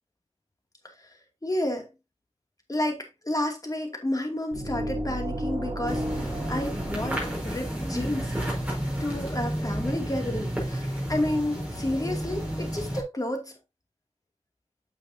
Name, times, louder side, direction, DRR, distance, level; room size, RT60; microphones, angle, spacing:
voice 1, 0.8-1.9 2.7-8.4 9.0-13.5, left 1 dB, 30° left, 2.4 m, -31 dB
sound 1, 4.5-8.3, right 1 dB, 35° right, 2.6 m, -34 dB
sound 2, 5.8-13.0, equal, 10° right, 5.2 m, -31 dB
9.0 x 7.0 x 2.7 m
wide cardioid pair, 85°, 12 cm